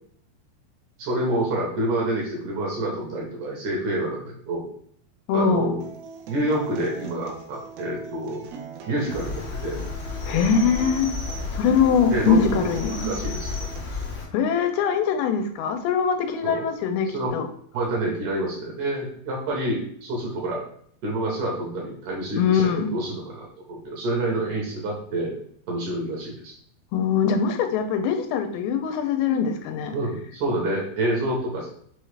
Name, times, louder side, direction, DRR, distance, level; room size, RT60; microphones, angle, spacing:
voice 1, 1.0-4.7 5.3-5.8 6.3-8.4 8.9-9.8 12.1-13.7 16.4-16.7 17.1-17.3 17.7-20.6 21.0-25.4 25.7-26.5 29.9-31.7, right 1 dB, 70° right, -2 dB, 2.3 m, -28 dB
voice 2, 5.3-5.7 10.3-11.1 11.5-13.0 14.3-17.5 22.4-22.9 26.9-30.0, left 6 dB, 85° left, 6 dB, 2.4 m, -22 dB
Acoustic guitar, 5.8-13.8, right 5 dB, 90° right, 2.5 m, -39 dB
Cricket, 9.1-14.3, left 4 dB, 70° left, 1.4 m, -32 dB
6.0 x 2.4 x 3.2 m, 0.64 s
omnidirectional pair, 4.3 m